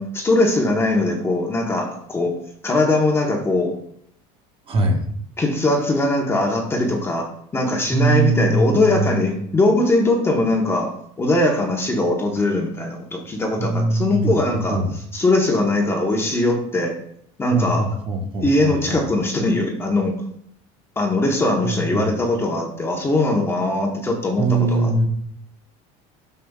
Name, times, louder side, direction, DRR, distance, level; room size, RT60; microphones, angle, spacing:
voice 1, 0.0-3.8 5.4-10.9 11.2-14.8 15.1-16.9 17.4-17.9 18.4-20.2 21.0-25.1, left 2 dB, 15° left, 1 dB, 1.1 m, -21 dB
voice 2, 4.7-5.0 7.9-9.2 13.6-14.3 14.7-14.9 17.5-19.0 21.6-22.0 24.4-25.1, right 3 dB, 30° right, 2 dB, 1.4 m, -21 dB
10.0 x 6.8 x 2.4 m, 0.66 s
cardioid pair, 145°, 17 cm